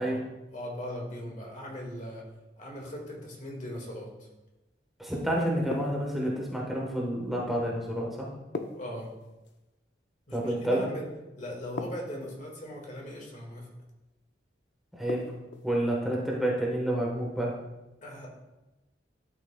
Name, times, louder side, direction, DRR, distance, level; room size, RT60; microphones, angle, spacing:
voice 1, 0.0-2.2 2.6-4.3 8.7-9.1 10.3-11.1 11.4-13.7 18.0-18.3, equal, 45° left, -1 dB, 1.8 m, -39 dB
voice 2, 5.0-8.3 10.3-10.8 14.9-15.4 15.6-17.6, right 1 dB, ahead, -3 dB, 1.1 m, -29 dB
sound 1, 5.7-6.5 8.5-9.6 11.8-12.5 15.1-15.7, left 3 dB, 80° left, 0.6 m, -39 dB
12.0 x 5.9 x 2.2 m, 1.0 s
head